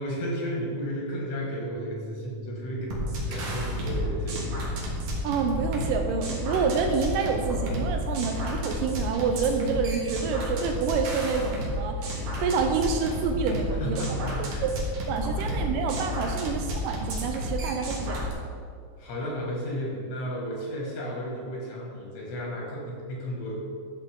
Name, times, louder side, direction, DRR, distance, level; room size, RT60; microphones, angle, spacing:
voice 1, 0.0-4.9 13.7-14.7 15.4-15.6 19.0-23.6, equal, 90° left, -3 dB, 4.1 m, -33 dB
Bass guitar, 1.7-7.9, right 1 dB, 20° right, 2.0 m, -44 dB
Aircraft, 2.7-12.2, left 1 dB, 50° left, 1.7 m, -45 dB
sound 1, 2.9-18.3, equal, 65° right, 3.1 m, -31 dB
voice 2, 5.2-14.7 15.1-18.3, right 5 dB, 85° right, 4 dB, 1.9 m, -28 dB
12.5 x 6.4 x 3.7 m, 2.3 s
omnidirectional pair, 4.5 m